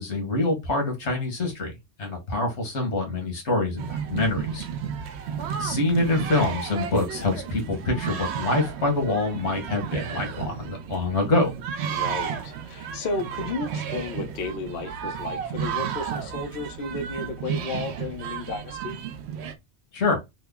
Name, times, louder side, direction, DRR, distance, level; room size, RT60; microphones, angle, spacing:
voice 1, 0.0-4.6 5.6-11.5 19.9-20.2, left 2 dB, 90° left, 1.6 m, -25 dB
sound 1, 3.8-19.5, right 7 dB, 75° right, 0.9 m, -33 dB
voice 2, 11.9-19.0, left 3 dB, 60° left, 0.8 m, -33 dB
3.5 x 2.0 x 3.5 m
omnidirectional pair, 1.1 m